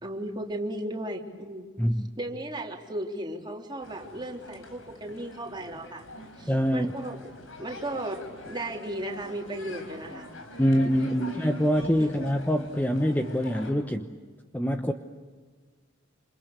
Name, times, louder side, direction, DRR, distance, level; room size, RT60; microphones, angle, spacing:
voice 1, 0.0-1.7 2.2-6.0 6.4-7.2 7.6-10.3 11.2-11.4, right 1 dB, 25° right, 0 dB, 3.5 m, -35 dB
voice 2, 1.8-2.1 6.5-6.9 10.6-14.1 14.5-14.9, equal, 10° left, 6 dB, 1.0 m, -25 dB
sound 1, 3.8-13.7, left 1 dB, 85° left, 4.5 m, -45 dB
28.5 x 28.0 x 6.8 m, 1.5 s
head